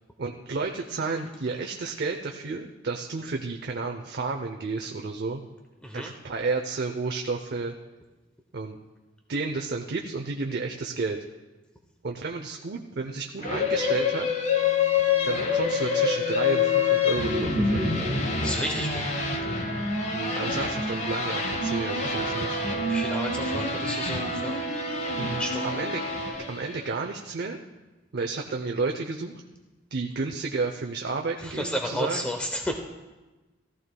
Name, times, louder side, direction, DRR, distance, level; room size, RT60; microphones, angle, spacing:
voice 1, 0.2-5.4 5.9-7.7 8.5-8.8 9.3-11.2 12.0-14.3 15.2-18.0 20.1-22.6 25.2-26.0 26.5-27.6 28.1-29.4 29.9-32.3, right 3 dB, 55° right, 3 dB, 0.6 m, -31 dB
sound 1, 13.4-27.0, left 5 dB, 35° left, 1.0 m, -27 dB
sound 2, 14.3-26.3, right 2 dB, 50° left, 1.7 m, -35 dB
voice 2, 18.4-19.0 22.8-24.6 25.4-25.7 31.4-32.8, equal, 5° left, 3 dB, 0.6 m, -32 dB
18.0 x 14.0 x 2.2 m, 1.2 s
head